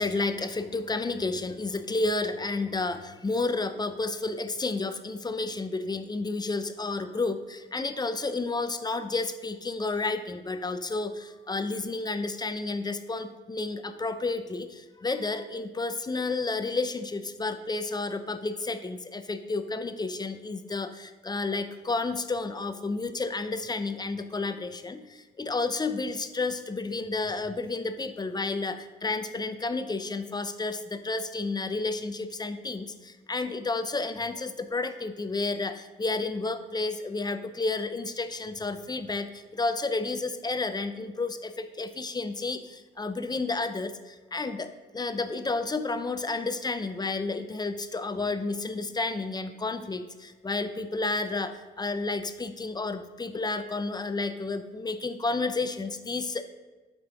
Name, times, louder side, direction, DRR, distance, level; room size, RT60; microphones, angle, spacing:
voice 1, 0.0-56.4, left 3 dB, 20° left, 10 dB, 0.6 m, -31 dB
7.9 x 5.2 x 5.1 m, 1.2 s
cardioid pair, 90°, 20 cm